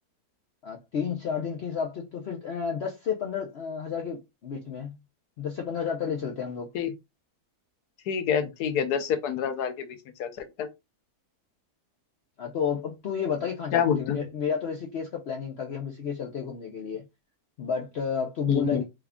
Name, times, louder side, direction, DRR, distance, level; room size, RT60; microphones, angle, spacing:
voice 1, 0.6-4.9 5.4-6.7 12.4-17.0 17.6-18.8, left 6 dB, 60° left, 0.7 m, -31 dB
voice 2, 8.1-9.9 10.2-10.7 13.7-14.2 18.5-18.8, left 8 dB, 80° left, 1.2 m, -27 dB
3.5 x 2.3 x 3.5 m
omnidirectional pair, 1.7 m